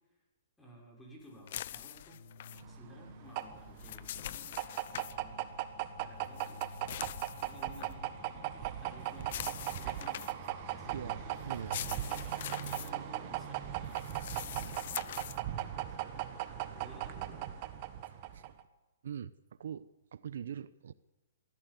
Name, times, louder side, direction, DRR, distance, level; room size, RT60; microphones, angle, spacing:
voice 1, 0.6-2.2 2.7-4.5 5.0-5.7 6.0-6.6 7.4-15.1 15.6-16.1 16.7-17.6, equal, 5° left, -1 dB, 5.8 m, -55 dB
sound 1, 1.5-2.6 3.6-5.2 6.4-7.9 9.2-10.5 11.5-12.9 13.9-15.4, left 12 dB, 50° left, 0.7 m, -43 dB
sound 2, 2.1-15.2, left 4 dB, 80° left, 6.0 m, -55 dB
sound 3, 2.6-18.6, right 13 dB, 35° right, 1.5 m, -38 dB
voice 2, 11.4-11.8 18.3-18.4 19.0-20.9, right 8 dB, 65° right, 16 dB, 0.8 m, -42 dB
23.0 x 15.5 x 8.4 m, 1.1 s
hypercardioid pair, 160°, 0 cm